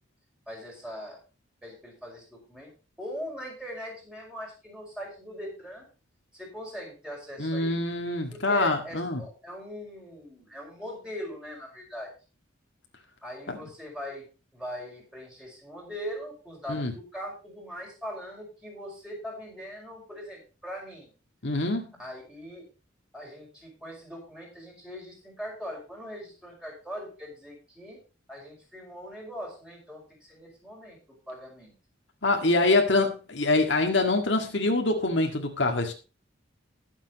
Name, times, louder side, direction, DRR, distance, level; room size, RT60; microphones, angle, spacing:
voice 1, 0.5-1.2 1.6-2.7 3.0-5.9 6.3-7.9 8.5-12.1 13.2-21.1 22.0-22.6 23.1-28.0 28.3-31.7, equal, 5° right, 5.3 m, -41 dB
voice 2, 7.4-9.2 13.5-13.6 16.7-16.9 21.4-21.9 32.2-35.9, left 2 dB, 60° left, 1.9 m, -25 dB
20.0 x 7.4 x 3.0 m
head